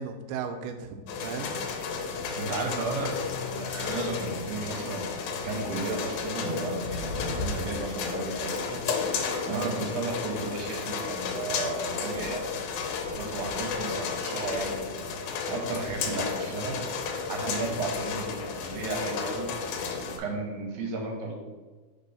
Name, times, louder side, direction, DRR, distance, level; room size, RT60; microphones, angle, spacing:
voice 1, 0.0-1.5 9.5-9.8 17.4-17.7, right 6 dB, 85° right, 7 dB, 2.2 m, -36 dB
sound 1, 1.1-20.2, left 5 dB, 75° left, 2.0 m, -33 dB
voice 2, 2.4-3.1 3.4-5.1 5.4-8.8 9.5-12.4 13.2-14.7 15.5-16.8 17.3-19.5 20.1-21.4, right 3 dB, 70° right, 1 dB, 1.9 m, -34 dB
4.4 x 4.0 x 5.5 m, 1.3 s
omnidirectional pair, 3.7 m